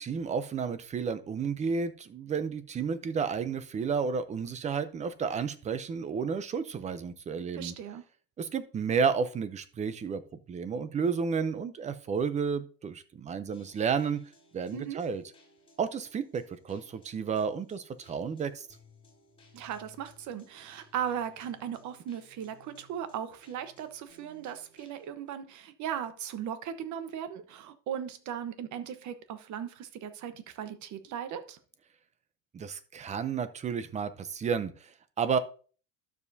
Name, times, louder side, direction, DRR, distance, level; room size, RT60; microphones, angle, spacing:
voice 1, 0.0-7.7 8.4-10.2 10.5-14.2 14.5-15.2 15.8-18.7 32.5-35.4, right 6 dB, 15° right, 0.5 m, -31 dB
voice 2, 7.6-8.0 14.7-15.0 19.5-31.6, right 9 dB, 35° right, 1.1 m, -37 dB
sound 1, 13.5-25.1, left 1 dB, 10° left, 3.7 m, -61 dB
12.0 x 7.1 x 2.7 m
supercardioid pair, 140°, 48 cm